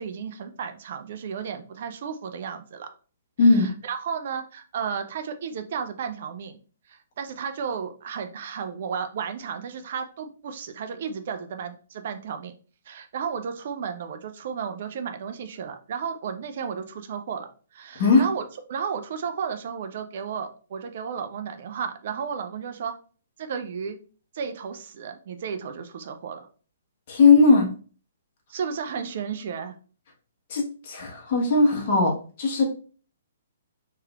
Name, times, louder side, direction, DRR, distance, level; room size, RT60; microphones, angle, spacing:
voice 1, 0.0-2.9 3.4-6.6 6.9-12.5 12.9-18.4 18.7-22.9 23.4-24.0 24.3-26.5 28.5-29.7, right 6 dB, 50° right, 8 dB, 0.4 m, -33 dB
voice 2, 3.4-3.7 18.0-18.2 27.1-27.7 30.5-32.6, left 4 dB, 45° left, 0 dB, 1.1 m, -18 dB
3.1 x 3.0 x 2.3 m, 0.39 s
figure-of-eight pair, 125°, 0 cm